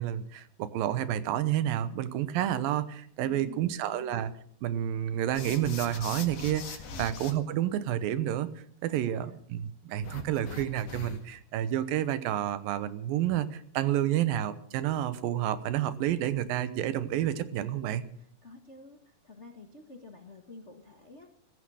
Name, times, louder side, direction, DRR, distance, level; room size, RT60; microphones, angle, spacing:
voice 1, 0.0-4.3 4.6-8.5 8.8-18.0, right 11 dB, 90° right, 14 dB, 2.7 m, -30 dB
voice 2, 3.2-4.1 6.9-7.1 8.9-9.3 18.2-19.0 19.2-21.3, left 3 dB, 75° left, 4 dB, 0.6 m, -48 dB
Cats sniffing, 5.3-7.3 10.0-11.4, left 5 dB, 50° left, 2.6 m, -41 dB
15.5 x 14.5 x 6.3 m, 0.64 s
omnidirectional pair, 4.0 m